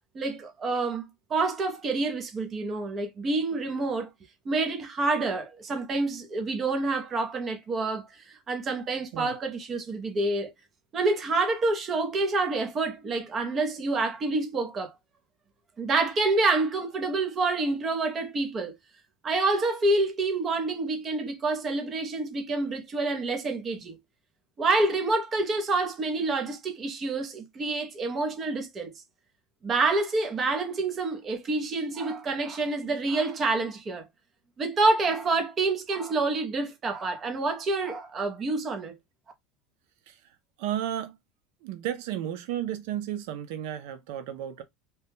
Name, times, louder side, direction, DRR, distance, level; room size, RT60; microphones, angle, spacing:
voice 1, 0.1-4.1 4.5-10.5 10.9-14.9 15.8-18.8 19.2-24.0 24.6-28.9 29.6-34.1 34.6-39.0, right 3 dB, 20° right, 0.6 m, -27 dB
voice 2, 40.6-41.2 41.6-44.6, right 11 dB, 70° right, 0.4 m, -33 dB
2.7 x 2.1 x 3.4 m
cardioid pair, 180°, 0 cm